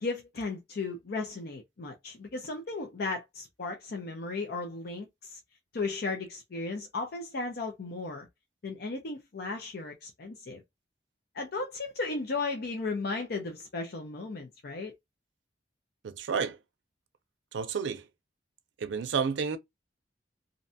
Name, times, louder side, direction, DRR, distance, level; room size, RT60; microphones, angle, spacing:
voice 1, 0.0-5.4 5.7-8.3 8.6-10.6 11.3-14.9, left 3 dB, 60° left, 0.5 m, -35 dB
voice 2, 16.0-16.6 17.5-18.1 18.8-19.6, right 6 dB, 85° right, 0.4 m, -30 dB
2.6 x 2.2 x 2.6 m
head